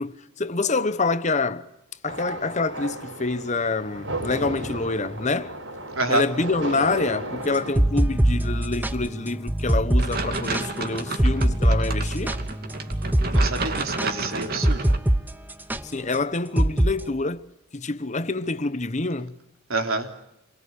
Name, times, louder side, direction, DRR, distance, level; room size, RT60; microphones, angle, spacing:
voice 1, 0.0-1.7 2.0-5.5 6.1-12.4 15.8-17.4 17.7-19.3, left 3 dB, 35° left, 1.0 m, -26 dB
sound 1, 2.1-7.7, right 2 dB, 70° right, 5.5 m, -34 dB
sound 2, 7.5-15.2 15.5-15.8 16.6-16.9, right 1 dB, 10° right, 0.9 m, -22 dB
sound 3, 10.0-15.0, right 3 dB, 50° right, 2.8 m, -31 dB
voice 2, 13.3-14.9 19.7-20.1, right 2 dB, 90° right, 3.5 m, -27 dB
28.0 x 22.5 x 8.3 m
head